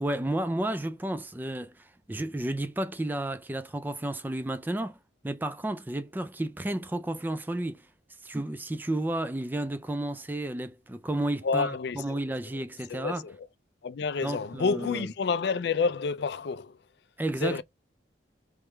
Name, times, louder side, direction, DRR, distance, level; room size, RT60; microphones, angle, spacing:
voice 1, 0.0-5.0 5.2-7.8 8.2-13.2 14.2-15.1 17.2-17.6, right 1 dB, 10° right, 0.3 m, -32 dB
voice 2, 11.4-12.2 12.9-13.5 13.8-16.7 17.4-17.6, left 4 dB, 60° left, 0.4 m, -29 dB
3.4 x 3.3 x 4.4 m
head